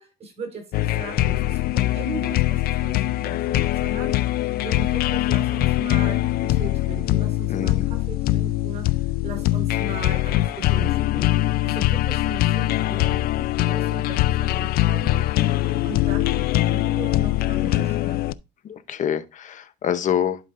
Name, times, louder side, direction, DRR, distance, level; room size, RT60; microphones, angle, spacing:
voice 1, 0.0-4.2 4.6-11.4 11.6-15.3 15.8-18.2, right 3 dB, 40° right, 4.6 m, -38 dB
sound 1, 0.7-18.3, left 15 dB, 65° left, 0.4 m, -22 dB
voice 2, 7.5-7.9 18.7-20.4, left 9 dB, 50° left, 0.8 m, -26 dB
11.0 x 5.1 x 2.6 m
cardioid pair, 110°, 17 cm